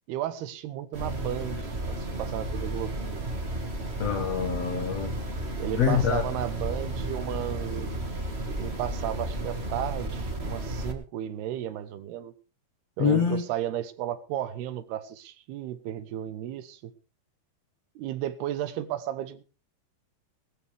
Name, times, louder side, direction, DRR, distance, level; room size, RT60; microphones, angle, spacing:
voice 1, 0.1-3.3 5.6-8.0 8.4-12.3 13.0-16.8 18.0-19.4, right 12 dB, 80° right, 3.2 m, -34 dB
sound 1, 0.9-10.9, right 1 dB, 30° right, 1.2 m, -33 dB
voice 2, 4.0-5.2 5.7-6.2 13.0-13.4, left 7 dB, 60° left, 1.8 m, -25 dB
19.0 x 13.5 x 3.5 m
omnidirectional pair, 4.5 m